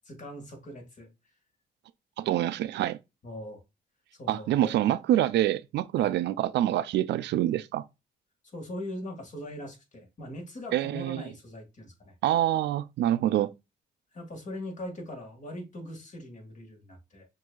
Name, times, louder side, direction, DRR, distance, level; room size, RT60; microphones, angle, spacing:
voice 1, 0.1-1.1 3.2-3.6 4.2-4.8 6.0-6.1 8.5-12.1 14.1-17.3, left 1 dB, 45° left, 1.9 m, -41 dB
voice 2, 2.2-3.0 4.3-7.8 10.7-11.2 12.2-13.5, right 13 dB, 85° right, 0.4 m, -26 dB
6.1 x 2.7 x 2.3 m
cardioid pair, 100°, 18 cm